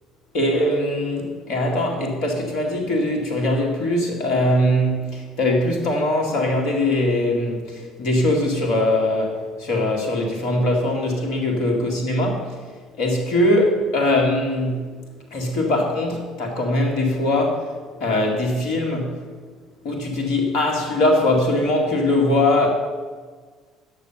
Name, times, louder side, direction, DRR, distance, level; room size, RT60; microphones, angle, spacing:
voice 1, 0.3-12.6 13.0-14.8 15.3-17.7 18.0-19.2 19.8-22.7, left 1 dB, 60° left, 1 dB, 2.2 m, -21 dB
9.8 x 7.0 x 6.8 m, 1.5 s
figure-of-eight pair, 55°, 0 cm